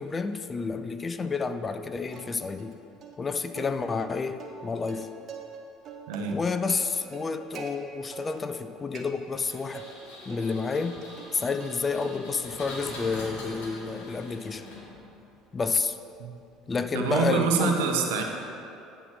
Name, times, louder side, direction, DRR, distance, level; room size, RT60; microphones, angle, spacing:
voice 1, 0.0-2.8 3.2-5.1 6.3-9.9 10.3-11.0 11.3-14.7 15.5-16.0 16.7-17.8, left 4 dB, 30° left, 10 dB, 0.4 m, -30 dB
Plucked string instrument, 2.1-2.7 3.0-3.1 3.5-5.6 5.8-7.7 8.1-8.6 8.9-9.9 10.3-11.8 12.0-12.5 12.9-17.2, right 6 dB, 45° right, 0.9 m, -46 dB
voice 2, 6.1-6.4 16.2-16.3 16.9-18.2, right 5 dB, 75° right, 2 dB, 0.9 m, -25 dB
Engine, 9.5-15.2, left 2 dB, 75° left, 1.9 m, -43 dB
8.9 x 4.2 x 5.7 m, 2.7 s
hypercardioid pair, 65°, 0 cm